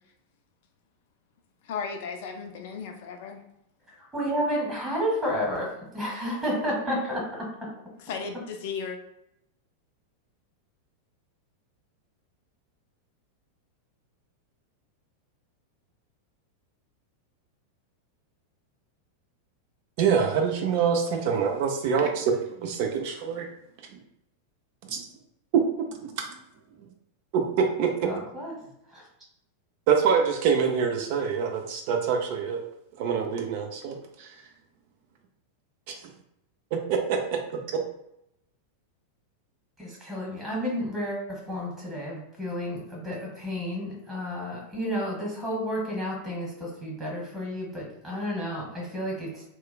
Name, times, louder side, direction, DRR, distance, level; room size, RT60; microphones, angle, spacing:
voice 1, 1.6-3.4 8.0-9.0, left 5 dB, 50° left, 4 dB, 0.4 m, -35 dB
voice 2, 3.9-5.7 5.9-7.5 28.0-28.5 28.9-29.0 39.8-49.4, equal, 15° right, -3 dB, 1.2 m, -31 dB
voice 3, 20.0-23.5 23.9-24.0 24.9-25.1 25.9-26.2 27.3-28.1 29.9-32.6 33.0-34.3 35.9-36.0 36.7-37.2 37.7-37.8, right 6 dB, 45° right, 4 dB, 0.3 m, -25 dB
2.9 x 2.2 x 2.2 m, 0.80 s
figure-of-eight pair, 90°, 0 cm